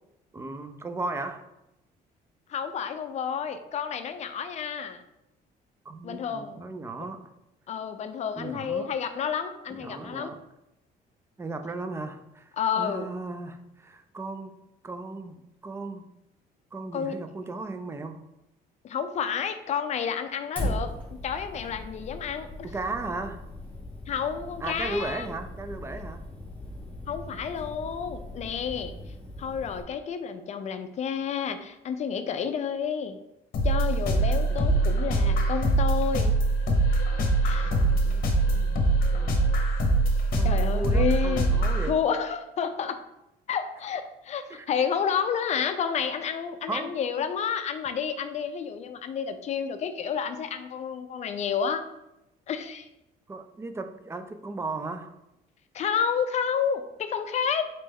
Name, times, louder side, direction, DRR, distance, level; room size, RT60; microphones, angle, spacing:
voice 1, 0.3-1.5 5.9-7.3 8.4-8.9 9.7-10.4 11.4-14.6 14.8-16.0 16.7-18.2 22.6-23.4 24.6-26.2 33.9-34.9 37.4-39.4 40.3-42.0 44.5-44.7 46.7-47.0 53.3-55.2, right 3 dB, 15° right, 8 dB, 0.4 m, -36 dB
voice 2, 2.5-5.0 6.0-6.6 7.7-10.3 12.6-13.1 16.9-17.2 18.8-20.9 21.2-22.5 24.1-25.3 27.1-29.0 29.4-33.2 33.6-36.3 37.4-37.7 40.4-41.5 41.9-43.0 43.5-51.8 52.5-52.9 55.7-57.7, left 7 dB, 45° left, 9 dB, 0.4 m, -30 dB
Fire, 20.6-29.8, left 1 dB, 10° left, 1.3 m, -38 dB
sound 1, 33.5-41.9, right 2 dB, 60° left, 0.8 m, -23 dB
4.0 x 3.3 x 3.5 m, 0.90 s
cardioid pair, 110°, 17 cm